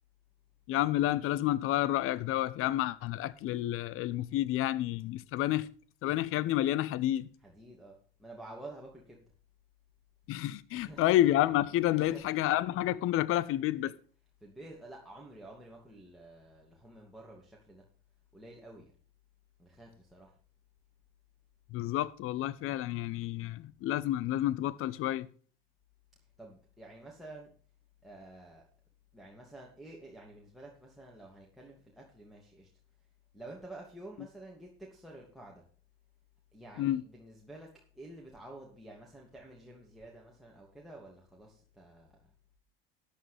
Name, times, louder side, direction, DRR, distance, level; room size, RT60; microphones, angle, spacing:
voice 1, 0.7-5.7 6.0-7.3 10.3-13.9 21.7-25.3 36.8-37.0, left 14 dB, 45° left, 0.8 m, -29 dB
voice 2, 7.4-9.2 10.7-11.1 11.9-12.4 14.4-17.8 18.3-18.9 19.6-20.4 26.4-27.5 28.0-28.7 29.1-32.7 33.3-35.6 36.5-42.3, right 2 dB, ahead, 2.6 m, -50 dB
13.5 x 10.5 x 3.4 m
hypercardioid pair, 75°, 30 cm